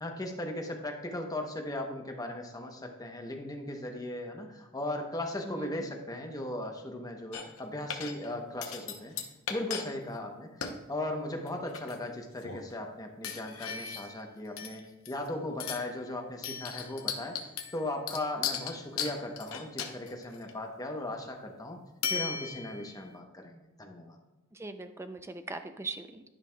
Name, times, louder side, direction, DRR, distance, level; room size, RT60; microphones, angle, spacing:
voice 1, 0.0-9.2 9.5-17.4 17.7-21.8 22.1-24.2, left 1 dB, 20° left, 3 dB, 0.8 m, -37 dB
voice 2, 5.4-5.8 24.5-26.2, right 3 dB, 15° right, 9 dB, 0.4 m, -40 dB
sound 1, 7.3-7.6 7.9-8.3 8.6-9.9 10.1-10.2 10.6-10.8 11.5-12.1 12.4-12.7 13.2-14.2 14.6-15.3 15.6-15.9 16.4-20.5 22.0-22.9, left 7 dB, 75° left, 0.8 m, -37 dB
11.0 x 5.4 x 2.3 m, 1.1 s
head